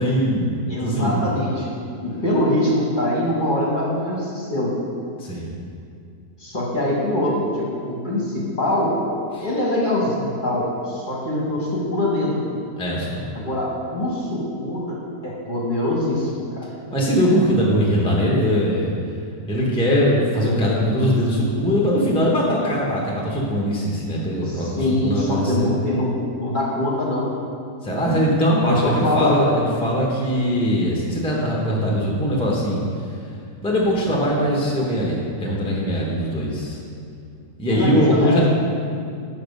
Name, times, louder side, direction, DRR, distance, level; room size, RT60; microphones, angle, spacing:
voice 1, 0.0-0.5 0.8-1.2 5.2-5.5 9.4-9.5 12.8-13.3 16.9-18.9 19.5-25.8 27.8-32.8 33.6-36.8 37.6-38.5, equal, 5° left, -4 dB, 0.8 m, -21 dB
voice 2, 0.7-1.7 2.0-4.7 6.4-9.0 9.4-12.4 13.3-15.0 15.2-16.7 24.4-27.3 28.7-29.4 37.7-38.4, left 1 dB, 30° left, -5 dB, 1.2 m, -23 dB
6.9 x 5.6 x 5.3 m, 2.4 s
omnidirectional pair, 1.9 m